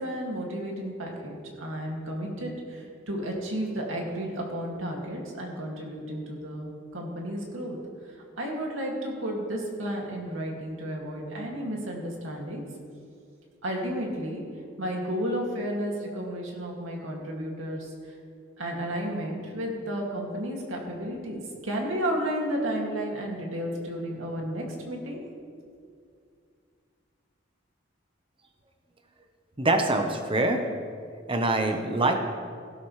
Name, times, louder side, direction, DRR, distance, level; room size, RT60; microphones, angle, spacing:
voice 1, 0.0-7.8 8.0-12.6 13.6-14.4 14.8-17.9 18.6-25.2, equal, 90° right, -1 dB, 2.4 m, -32 dB
voice 2, 29.6-30.6 31.3-32.1, right 2 dB, 25° right, 5 dB, 1.0 m, -24 dB
16.0 x 12.5 x 3.3 m, 2.2 s
head